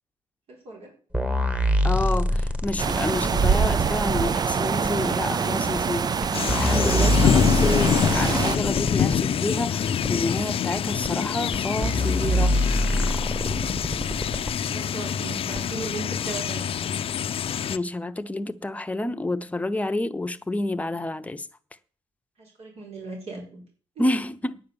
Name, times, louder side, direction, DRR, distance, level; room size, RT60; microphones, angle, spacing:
voice 1, 0.5-0.9 14.5-16.7 22.4-23.6 24.0-24.1, right 3 dB, 65° right, 4.5 m, -37 dB
sound 1, 1.1-3.9 4.8-4.9 5.8-5.9 6.2-9.2 10.0-10.1 11.0-11.1 11.5-11.6 11.8-14.5 15.6-15.7, equal, 10° right, 1.6 m, -25 dB
voice 2, 1.8-12.6 17.7-21.5 24.0-24.6, left 2 dB, 10° left, 0.9 m, -29 dB
sound 2, 2.8-8.6, right 6 dB, 35° right, 0.5 m, -25 dB
sound 3, 6.3-17.8, left 8 dB, 55° left, 0.6 m, -26 dB
9.6 x 7.8 x 7.0 m
cardioid pair, 80°, 11 cm